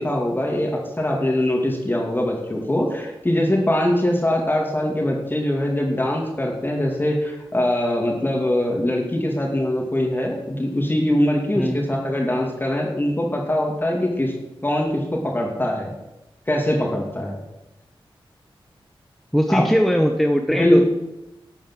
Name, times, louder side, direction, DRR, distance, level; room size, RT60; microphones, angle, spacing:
voice 1, 0.0-14.3 14.6-15.9 16.5-17.4 19.5-19.7 20.5-20.9, left 1 dB, 20° left, -1 dB, 2.5 m, -22 dB
voice 2, 19.3-20.9, equal, ahead, 4 dB, 0.9 m, -20 dB
12.0 x 7.2 x 7.6 m, 0.97 s
wide cardioid pair, 80°, 9 cm